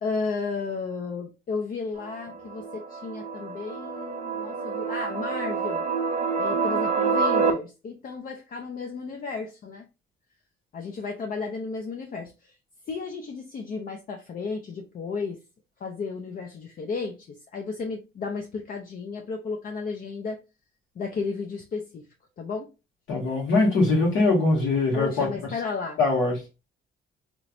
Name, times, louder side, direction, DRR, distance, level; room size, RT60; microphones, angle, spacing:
voice 1, 0.0-5.9 6.4-9.9 10.7-12.5 12.9-15.4 15.8-20.4 21.0-22.1 22.4-22.7 24.9-26.0, left 4 dB, 45° left, 0.5 m, -33 dB
sound 1, 2.0-7.5, right 5 dB, 40° right, 0.8 m, -27 dB
voice 2, 23.1-25.3 26.0-26.4, left 3 dB, 80° left, 1.5 m, -22 dB
3.1 x 3.1 x 2.4 m
cardioid pair, 90°, 20 cm